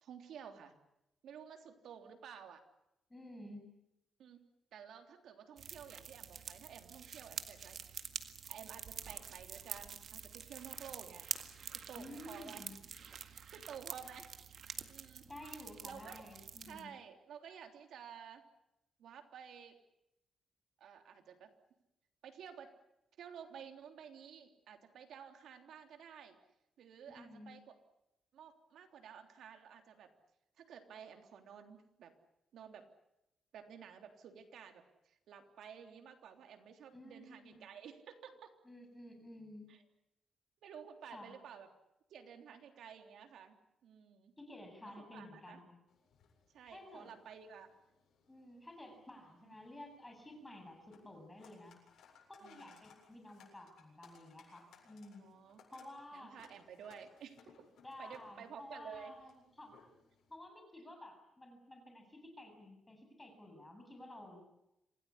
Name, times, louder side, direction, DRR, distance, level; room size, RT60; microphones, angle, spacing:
voice 1, 0.0-0.7 1.2-2.6 4.2-4.4 4.7-11.3 11.7-12.7 13.1-14.3 14.9-15.3 15.8-16.2 16.6-18.4 19.0-19.8 20.8-21.5 22.2-22.7 23.2-26.4 26.8-27.7 28.3-30.1 30.6-32.1 32.5-32.9 33.5-38.5 39.7-39.8 40.6-41.7 42.1-43.6 43.8-44.3 44.8-45.6 46.5-47.7 49.4-49.6 52.4-52.8 55.2-55.7 56.1-57.4 58.0-59.1, right 7 dB, 80° right, 6 dB, 3.4 m, -53 dB
voice 2, 3.1-3.7 12.0-12.7 15.2-16.9 27.2-27.5 36.9-37.7 38.6-39.7 41.1-41.3 44.4-45.8 46.6-47.2 48.3-51.7 52.3-55.3 55.7-56.4 57.8-59.7 60.3-64.4, left 1 dB, 10° left, 3 dB, 7.8 m, -52 dB
sound 1, 5.6-16.8, right 7 dB, 55° right, 1.8 m, -47 dB
sound 2, 45.9-60.4, left 6 dB, 85° left, 7.6 m, -66 dB
27.0 x 18.0 x 9.9 m, 0.88 s
cardioid pair, 130°, 0 cm